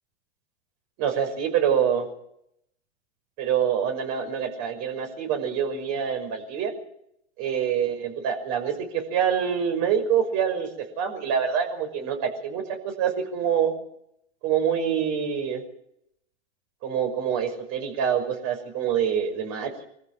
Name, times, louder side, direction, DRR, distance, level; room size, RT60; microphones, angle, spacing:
voice 1, 1.0-2.1 3.4-6.7 7.4-10.7 11.0-13.7 14.4-15.6 16.8-19.9, right 8 dB, 50° right, 5 dB, 6.1 m, -26 dB
24.0 x 14.5 x 8.8 m, 0.76 s
hypercardioid pair, 115°, 35 cm